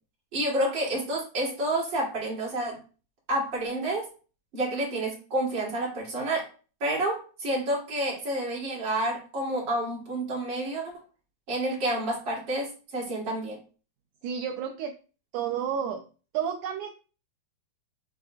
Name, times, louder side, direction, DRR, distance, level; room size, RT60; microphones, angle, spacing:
voice 1, 0.3-2.8 3.3-4.1 4.5-6.5 6.8-10.9 11.5-13.6, right 1 dB, 35° right, -4 dB, 3.1 m, -29 dB
voice 2, 14.2-15.0 15.3-16.0 16.3-16.9, right 8 dB, 80° right, 5 dB, 1.9 m, -31 dB
7.8 x 5.7 x 2.4 m, 0.36 s
omnidirectional pair, 4.2 m